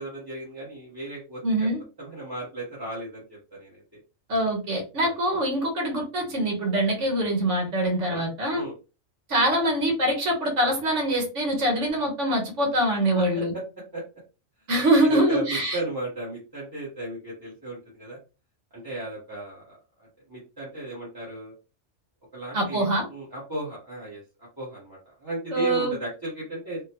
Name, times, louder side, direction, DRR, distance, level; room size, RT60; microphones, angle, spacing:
voice 1, 0.0-1.7 2.0-3.2 3.5-3.8 5.0-5.1 8.1-8.2 8.5-8.7 13.2-13.3 13.5-13.6 13.9-14.0 15.0-18.2 18.7-19.8 20.3-21.5 22.3-24.2 24.6-26.8, right 1 dB, 20° right, -7 dB, 1.0 m, -35 dB
voice 2, 1.4-1.8 4.3-8.6 9.3-13.5 14.7-15.8 22.5-23.1 25.5-26.0, right 1 dB, 70° right, 1 dB, 1.4 m, -24 dB
3.5 x 2.2 x 2.8 m, 0.31 s
omnidirectional pair, 1.3 m